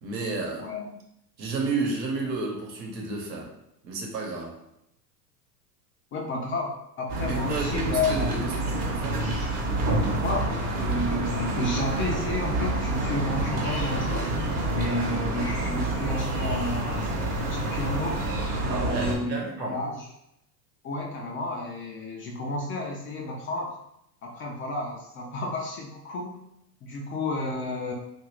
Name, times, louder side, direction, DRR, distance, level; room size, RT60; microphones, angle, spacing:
voice 1, 0.0-0.7 1.4-3.5 3.8-4.6 7.3-9.2 18.6-19.8, right 3 dB, 75° right, 0 dB, 1.0 m, -31 dB
voice 2, 0.6-1.0 6.1-6.7 7.0-8.3 10.2-14.3 14.7-18.2 18.6-20.1 20.8-23.7 24.2-26.4 26.8-27.9, left 2 dB, 25° left, 0 dB, 0.4 m, -31 dB
sound 1, 7.1-19.2, right 2 dB, 40° right, 0.9 m, -28 dB
3.0 x 2.5 x 3.0 m, 0.80 s
hypercardioid pair, 90°, 50 cm